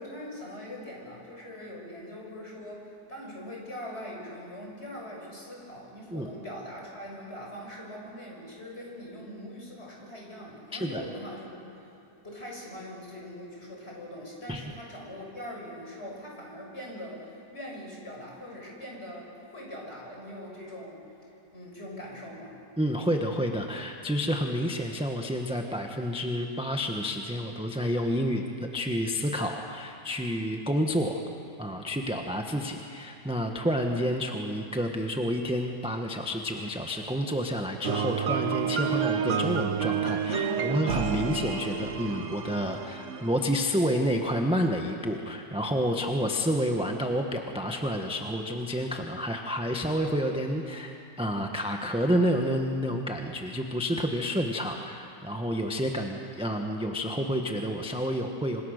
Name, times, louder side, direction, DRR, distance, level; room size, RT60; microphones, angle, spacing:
voice 1, 0.0-11.9 12.2-21.0 21.5-22.6, left 1 dB, 40° left, -2 dB, 6.4 m, -42 dB
voice 2, 10.7-11.0 14.5-14.6 22.8-31.2 31.6-58.6, equal, 5° right, 2 dB, 1.1 m, -29 dB
sound 1, 37.8-43.7, right 7 dB, 50° right, 1.2 m, -30 dB
26.5 x 26.0 x 6.6 m, 2.8 s
omnidirectional pair, 1.8 m